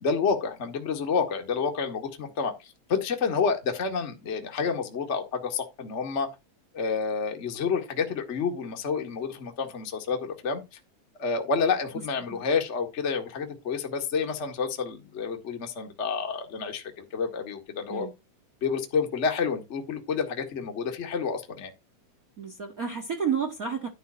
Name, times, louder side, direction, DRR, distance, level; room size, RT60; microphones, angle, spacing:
voice 1, 0.0-6.3 6.7-10.6 11.2-18.1 18.6-21.7, left 5 dB, 30° left, 1.6 m, -29 dB
voice 2, 22.4-23.9, right 7 dB, 35° right, 1.6 m, -30 dB
11.5 x 3.8 x 6.5 m
omnidirectional pair, 3.4 m